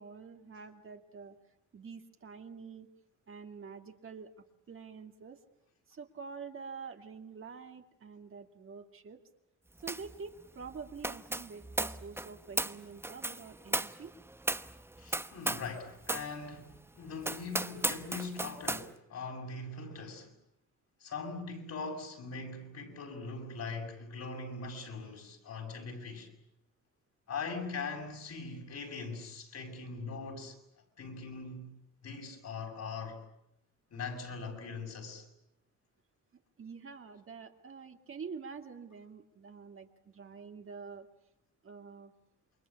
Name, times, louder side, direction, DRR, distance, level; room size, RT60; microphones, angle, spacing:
voice 1, 0.0-1.4 1.7-2.9 3.3-4.3 4.7-5.4 5.9-9.2 9.8-14.1 36.6-41.1 41.6-42.1, right 5 dB, 45° right, 2.7 m, -47 dB
sound 1, 9.9-10.2 10.4-15.8 16.0-16.3 16.7-16.8 17.2-18.9, right 1 dB, 10° right, 1.1 m, -36 dB
voice 2, 15.0-20.3 21.0-26.3 27.3-30.6 31.0-31.7 32.0-33.2 33.9-35.3, left 4 dB, 60° left, 6.9 m, -41 dB
28.5 x 23.0 x 8.6 m
cardioid pair, 90°, 30 cm